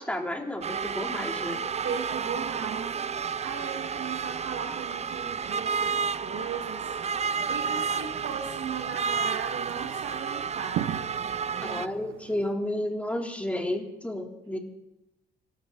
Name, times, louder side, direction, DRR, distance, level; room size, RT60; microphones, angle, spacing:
voice 1, 0.0-1.6 11.6-14.6, left 1 dB, 5° left, 1 dB, 3.2 m, -31 dB
sound 1, 0.6-11.9, right 6 dB, 35° right, 0.6 m, -31 dB
voice 2, 1.8-2.9 3.2-11.1, right 6 dB, 70° right, 0 dB, 2.1 m, -37 dB
sound 2, 7.3-12.5, right 12 dB, 85° right, 0.9 m, -40 dB
27.0 x 13.0 x 4.1 m, 0.90 s
cardioid pair, 90°, 20 cm